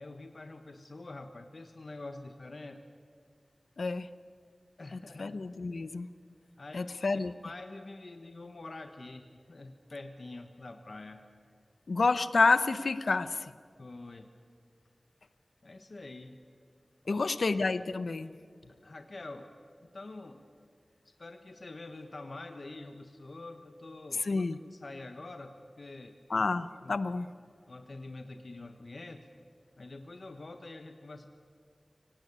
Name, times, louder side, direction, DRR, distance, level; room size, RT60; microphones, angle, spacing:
voice 1, 0.0-2.8 4.8-5.3 6.6-6.9 7.4-11.3 13.8-14.3 15.6-16.4 17.0-17.3 18.8-19.5 19.8-20.5 21.0-24.4 24.7-26.4 26.8-27.0 27.7-29.3 29.8-31.3, left 2 dB, 60° left, 7 dB, 1.3 m, -46 dB
voice 2, 3.8-4.1 4.9-6.1 6.7-7.3 11.9-13.4 17.1-18.3 24.2-24.6 26.3-27.3, left 3 dB, 85° left, 14 dB, 0.8 m, -29 dB
24.0 x 18.0 x 9.8 m, 2.2 s
wide cardioid pair, 75°, 0 cm